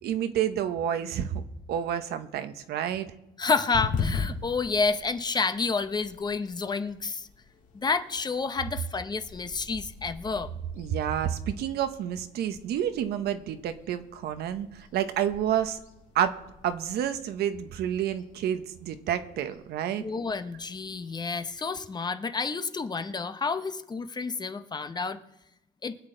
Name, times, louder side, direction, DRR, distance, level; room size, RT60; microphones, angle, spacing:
voice 1, 0.0-1.4 1.7-3.1 10.8-15.8 16.1-16.4 16.6-20.0, right 10 dB, 70° right, 9 dB, 1.1 m, -29 dB
voice 2, 3.4-7.3 7.7-10.5 20.0-25.2 25.8-26.0, left 4 dB, 25° left, 10 dB, 0.8 m, -29 dB
sound 1, 3.7-21.6, left 5 dB, 50° left, 2.1 m, -41 dB
23.5 x 8.1 x 3.9 m, 0.89 s
cardioid pair, 110°, 17 cm